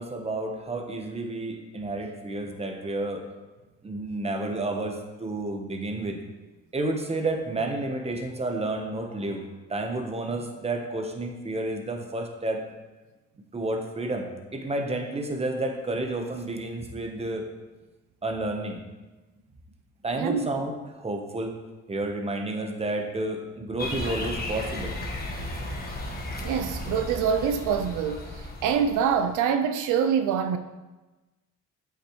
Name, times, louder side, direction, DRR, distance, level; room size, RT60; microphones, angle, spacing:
voice 1, 0.0-3.3 3.8-6.2 6.7-9.4 9.7-12.7 13.5-17.5 18.2-18.8 20.0-21.6 21.9-24.9, right 2 dB, 20° right, 1.0 m, -30 dB
voice 2, 20.2-20.5 26.4-30.6, right 7 dB, 85° right, 0.5 m, -25 dB
sound 1, 23.8-29.3, left 1 dB, 30° left, 1.5 m, -35 dB
8.1 x 5.8 x 3.1 m
cardioid pair, 90°, 30 cm